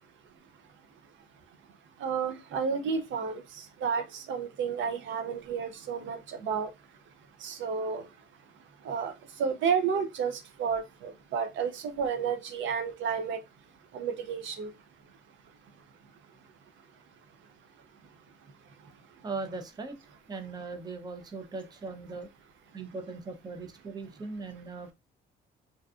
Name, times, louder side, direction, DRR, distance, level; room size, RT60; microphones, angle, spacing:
voice 1, 2.0-3.4 3.8-6.7 7.4-8.0 8.8-9.1 9.4-13.4 13.9-14.7, right 6 dB, 75° right, 0.5 m, -31 dB
voice 2, 19.2-20.0 20.3-22.3 22.7-24.9, right 3 dB, 20° right, 0.5 m, -39 dB
2.6 x 2.3 x 2.3 m
cardioid pair, 90°, 20 cm